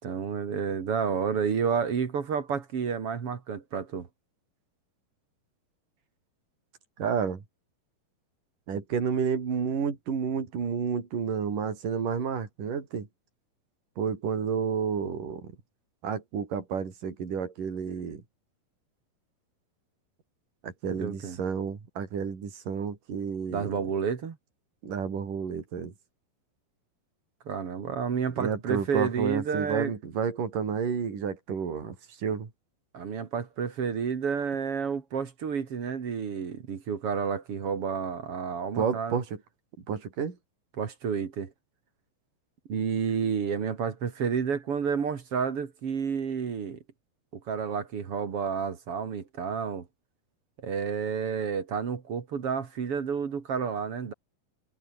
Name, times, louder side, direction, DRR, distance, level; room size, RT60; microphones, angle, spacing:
voice 1, 0.0-4.1 21.0-21.4 23.5-24.4 27.5-29.9 32.9-39.2 40.8-41.5 42.7-46.8 47.3-49.9 50.6-54.1, right 6 dB, 45° right, 2.7 m, -30 dB
voice 2, 7.0-7.4 8.7-13.1 14.0-15.5 16.0-18.2 20.6-23.8 24.8-25.9 28.4-32.5 38.7-39.4 39.9-40.4, right 6 dB, 65° right, 5.6 m, -30 dB
omnidirectional pair, 4.1 m